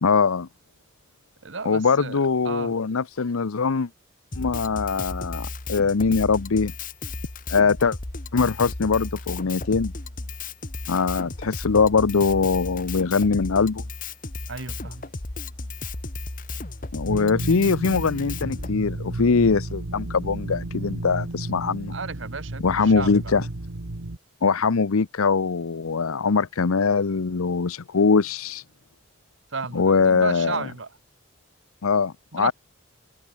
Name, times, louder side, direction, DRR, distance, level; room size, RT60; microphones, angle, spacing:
voice 1, 0.0-0.5 1.6-3.9 4.4-6.7 7.5-8.0 8.3-9.9 10.9-13.8 16.9-21.9 22.6-23.5 24.4-28.6 29.7-30.6 31.8-32.5, left 5 dB, 90° left, 0.7 m, -22 dB
voice 2, 1.4-2.8 14.5-15.1 21.9-23.3 29.5-31.0 32.3-32.5, right 4 dB, 65° right, 1.3 m, -34 dB
Drum kit, 4.3-18.7, left 3 dB, 40° left, 1.5 m, -34 dB
sound 1, 17.1-24.2, right 2 dB, 85° right, 1.5 m, -33 dB
head